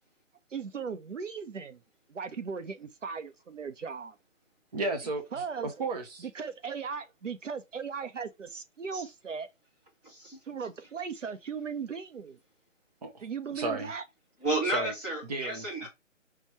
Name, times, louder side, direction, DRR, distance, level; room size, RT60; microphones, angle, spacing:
voice 1, 0.5-1.8 2.1-4.2 5.3-5.7 6.2-9.5 10.4-12.4 13.2-14.0, right 6 dB, 70° right, 1.0 m, -37 dB
voice 2, 4.7-6.3 13.0-13.2 13.5-13.9 14.7-14.9 15.3-15.9, right 3 dB, 30° right, 0.8 m, -34 dB
voice 3, 10.0-10.4 14.4-15.9, right 2 dB, 10° right, 1.0 m, -32 dB
6.0 x 2.9 x 3.0 m
figure-of-eight pair, 160°, 38 cm